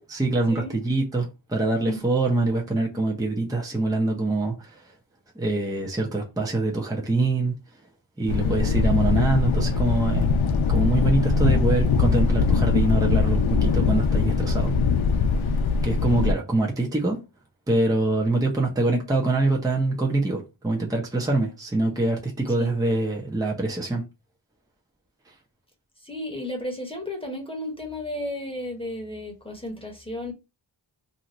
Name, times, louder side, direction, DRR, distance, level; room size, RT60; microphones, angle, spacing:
voice 1, 0.1-4.8 5.4-7.5 8.2-10.3 10.7-14.7 15.8-17.2 17.7-24.0, right 2 dB, 10° right, 0.6 m, -24 dB
Thunder, 8.3-16.3, left 5 dB, 90° left, 0.6 m, -22 dB
voice 2, 8.4-8.9 22.6-22.7 26.0-30.3, left 1 dB, 10° left, 1.0 m, -33 dB
2.7 x 2.4 x 3.0 m
wide cardioid pair, 85°, 46 cm